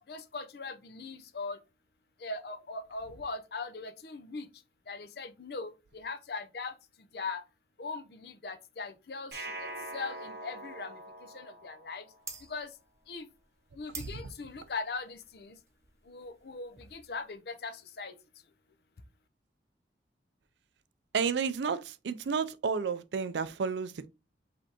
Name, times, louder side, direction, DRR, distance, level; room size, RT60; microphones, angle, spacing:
voice 1, 0.1-1.6 2.2-4.5 4.9-7.4 7.8-12.1 12.4-12.7 13.1-13.3 13.7-15.6 16.0-18.2, left 4 dB, 60° left, 0.6 m, -40 dB
sound 1, 9.3-12.4, right 1 dB, 65° right, 0.8 m, -43 dB
sound 2, 12.2-17.3, right 5 dB, 15° right, 0.7 m, -49 dB
voice 2, 13.9-14.3 21.1-24.1, right 5 dB, 80° right, 0.4 m, -32 dB
5.1 x 3.3 x 2.9 m
head